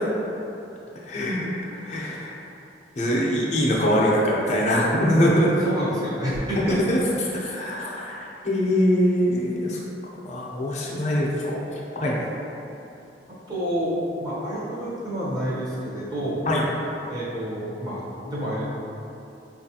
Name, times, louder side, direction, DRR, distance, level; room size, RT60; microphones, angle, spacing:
voice 1, 1.0-2.4 3.0-5.5 6.7-7.0 7.3-9.8 10.2-11.6 12.0-12.2 16.5-16.7, equal, 40° left, -4 dB, 0.5 m, -23 dB
voice 2, 5.4-6.8 13.5-16.5 17.1-18.6, equal, 20° right, -9 dB, 0.8 m, -29 dB
4.5 x 2.4 x 2.8 m, 2.8 s
head